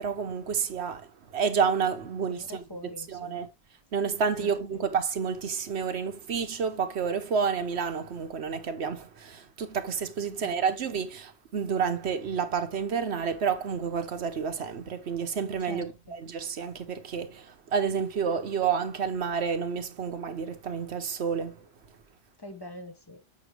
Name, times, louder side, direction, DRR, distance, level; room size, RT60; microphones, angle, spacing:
voice 1, 0.0-2.6 3.1-3.5 3.9-21.7, right 6 dB, 90° right, 1.2 m, -30 dB
voice 2, 2.3-3.4 4.4-4.8 15.6-16.1 22.4-23.2, left 1 dB, 25° left, 0.9 m, -44 dB
7.6 x 5.9 x 3.1 m
omnidirectional pair, 1.1 m